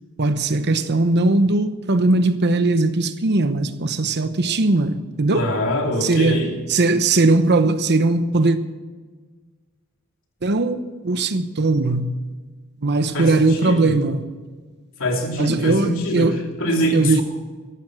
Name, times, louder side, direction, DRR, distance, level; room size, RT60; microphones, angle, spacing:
voice 1, 0.2-5.5 6.0-6.4 6.7-8.6 10.4-12.1 12.8-14.3 15.4-16.4 16.9-17.2, right 2 dB, 50° right, 0.9 m, -19 dB
voice 2, 5.3-6.5 13.1-14.0 15.0-16.3 16.6-17.2, equal, 65° left, 2.9 m, -23 dB
14.0 x 12.0 x 6.3 m
head